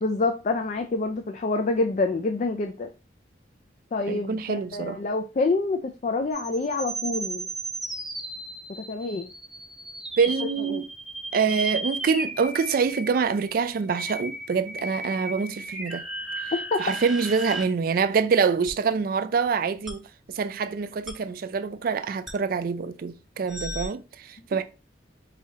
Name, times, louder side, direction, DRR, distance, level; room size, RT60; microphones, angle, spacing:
voice 1, 0.0-2.9 3.9-7.5 8.7-9.3 10.7-10.8 16.7-16.8 24.5-24.6, left 3 dB, 40° left, 0.4 m, -27 dB
voice 2, 4.1-5.0 10.2-10.9 11.3-16.0 16.8-20.0 20.3-24.6, right 5 dB, 55° right, 0.3 m, -25 dB
sound 1, 6.3-17.6 18.7-18.8 19.9-20.0 21.1-21.2 22.3-22.4 23.5-23.9, right 2 dB, ahead, 0.7 m, -35 dB
4.8 x 2.8 x 2.8 m
head